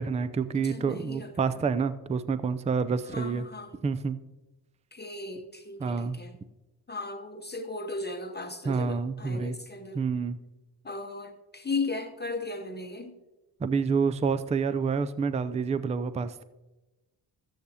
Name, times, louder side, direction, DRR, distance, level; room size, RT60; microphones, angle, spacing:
voice 1, 0.0-3.4 3.8-4.2 5.8-6.2 8.7-9.6 9.9-10.4 13.6-16.4, right 5 dB, 15° right, 0.4 m, -28 dB
voice 2, 0.5-1.3 3.1-3.7 4.9-6.3 6.9-10.0 10.8-13.2, left 3 dB, 20° left, 0.8 m, -36 dB
13.0 x 9.1 x 2.8 m
supercardioid pair, 65°, 47 cm